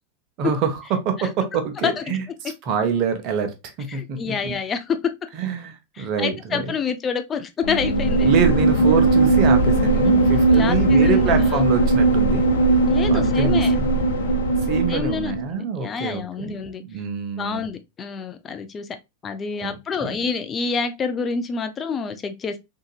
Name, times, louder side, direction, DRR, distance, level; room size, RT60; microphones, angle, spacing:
voice 1, 0.4-0.8 1.0-4.6 5.3-6.7 8.2-12.5 13.1-13.9 14.7-16.5 16.8-17.7 19.6-20.1, right 6 dB, 45° right, 0.8 m, -26 dB
voice 2, 3.9-5.1 6.0-8.3 10.1-11.6 12.9-13.8 14.9-16.8 17.4-18.9 19.2-22.6, left 5 dB, 25° left, 0.4 m, -27 dB
sound 1, 7.6-15.5, right 2 dB, 75° left, 0.6 m, -18 dB
3.7 x 2.8 x 2.2 m
hypercardioid pair, 95°, 0 cm